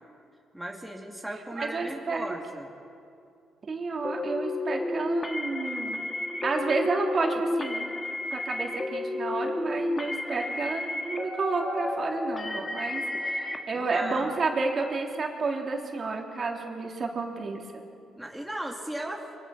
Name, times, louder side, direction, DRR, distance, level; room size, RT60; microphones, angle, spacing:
voice 1, 0.5-2.7 13.7-14.4 18.2-19.3, right 1 dB, 5° right, 0 dB, 2.3 m, -37 dB
voice 2, 1.6-2.3 3.7-6.1 6.4-7.8 8.3-17.8, right 3 dB, 45° right, 1 dB, 3.3 m, -30 dB
sound 1, 4.0-13.6, left 2 dB, 25° left, 2.2 m, -32 dB
24.5 x 23.5 x 6.1 m, 2.5 s
cardioid pair, 90°, 0 cm